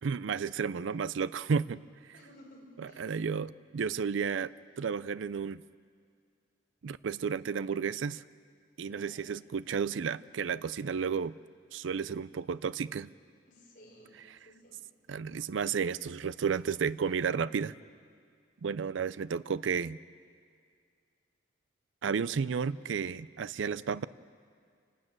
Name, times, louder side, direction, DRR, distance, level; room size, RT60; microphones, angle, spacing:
voice 1, 0.0-1.8 2.8-4.5 4.8-5.6 6.8-8.2 8.8-11.3 11.7-13.1 15.1-17.7 18.6-20.0 22.0-24.1, right 6 dB, 85° right, 17 dB, 0.4 m, -32 dB
voice 2, 2.1-3.1 8.8-9.2 13.5-14.8, left 1 dB, 45° left, -2 dB, 5.5 m, -56 dB
29.0 x 12.5 x 8.9 m, 2.1 s
head